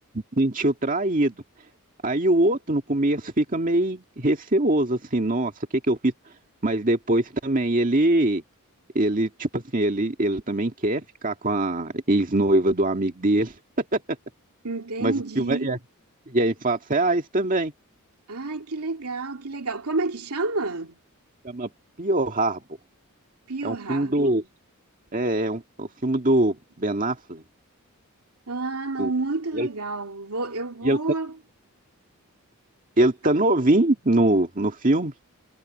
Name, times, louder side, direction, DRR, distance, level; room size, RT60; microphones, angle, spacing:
voice 1, 0.3-1.3 2.0-5.5 5.9-6.1 6.6-8.4 9.0-13.5 13.9-14.0 15.0-15.8 16.3-17.7 21.4-21.7 22.0-22.6 23.6-24.4 25.1-27.4 29.0-29.1 29.5-29.7 30.8-31.0 33.0-35.1, right 1 dB, 35° right, 2.0 m, -23 dB
voice 2, 14.6-15.7 18.3-21.0 23.5-24.5 28.5-31.4, right 3 dB, 80° right, 2.5 m, -30 dB
head